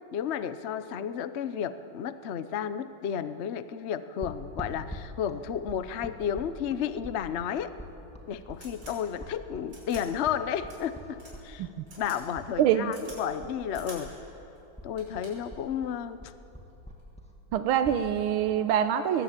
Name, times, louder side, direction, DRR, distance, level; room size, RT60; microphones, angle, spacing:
voice 1, 0.1-7.7 8.3-11.7 12.0-14.1 14.8-16.3, left 8 dB, 65° left, 12 dB, 0.6 m, -32 dB
sound 1, 4.2-12.5 12.8-14.5 14.8-18.0, left 1 dB, 5° left, 2.1 m, -44 dB
sound 2, 7.9-8.0 8.5-9.0 9.7-10.0 10.7-10.8 11.2-11.3 11.9-12.2 12.5-13.2 13.7-14.0 14.6-14.7 15.0-15.5 16.7-17.0, right 1 dB, 55° right, 6.5 m, -47 dB
voice 2, 12.6-12.9 17.5-19.2, right 9 dB, 85° right, 9 dB, 1.6 m, -25 dB
21.5 x 20.5 x 9.0 m, 3.0 s
omnidirectional pair, 2.3 m